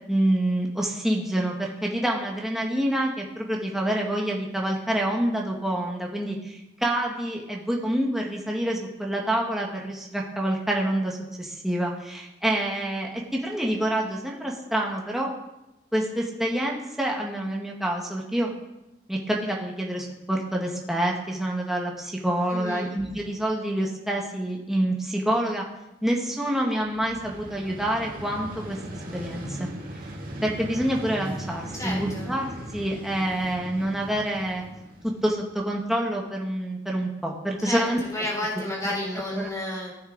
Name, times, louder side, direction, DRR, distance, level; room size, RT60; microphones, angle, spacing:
voice 1, 0.1-15.3 15.9-18.5 19.1-25.6 26.0-28.8 29.1-29.7 30.4-34.6 35.2-38.0 38.8-38.9 39.3-39.5, right 1 dB, ahead, -1 dB, 1.5 m, -27 dB
voice 2, 22.5-22.9 31.7-32.3 37.7-37.8 38.1-39.9, left 1 dB, 20° left, -4 dB, 4.2 m, -31 dB
Vehicle, 26.8-35.7, right 1 dB, 50° right, 2.2 m, -39 dB
15.5 x 9.3 x 4.0 m, 0.93 s
head